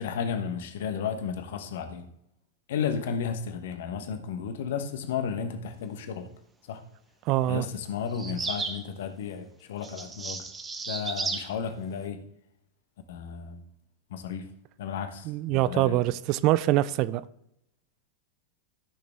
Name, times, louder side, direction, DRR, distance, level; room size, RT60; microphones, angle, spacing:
voice 1, 0.0-2.1 2.7-6.3 6.7-6.8 7.5-10.5 10.9-12.2 13.1-13.6 14.1-14.5 14.8-16.1, left 7 dB, 55° left, 1.2 m, -33 dB
voice 2, 7.3-7.6 15.3-17.2, right 15 dB, 40° right, 0.4 m, -24 dB
sound 1, 8.1-8.8 9.8-11.5, right 4 dB, 15° right, 1.0 m, -34 dB
13.5 x 6.2 x 3.5 m
figure-of-eight pair, 90°, 0 cm